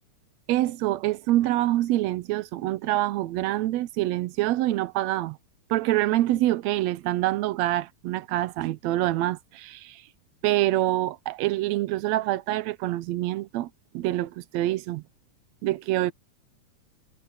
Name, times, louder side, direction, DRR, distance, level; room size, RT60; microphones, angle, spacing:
voice 1, 0.5-5.4 5.7-10.0 10.4-15.0 15.6-16.1, right 15 dB, 75° right, 1.8 m, -26 dB
omnidirectional pair, 3.5 m